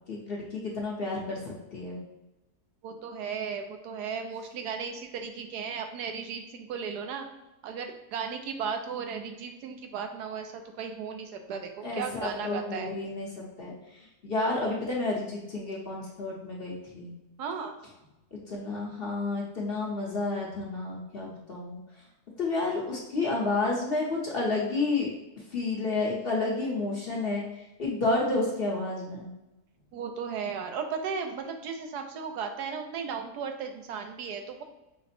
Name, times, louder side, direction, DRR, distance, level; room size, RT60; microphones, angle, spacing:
voice 1, 0.1-2.0 11.8-13.3 13.6-13.7 14.2-17.1 18.5-21.8 22.4-25.1 25.5-27.4 27.8-29.3, left 3 dB, 45° left, -3 dB, 0.9 m, -30 dB
voice 2, 2.8-7.3 7.6-12.9 17.4-17.7 29.9-34.6, right 6 dB, 80° right, 5 dB, 1.2 m, -35 dB
5.8 x 2.1 x 4.2 m, 0.98 s
omnidirectional pair, 1.7 m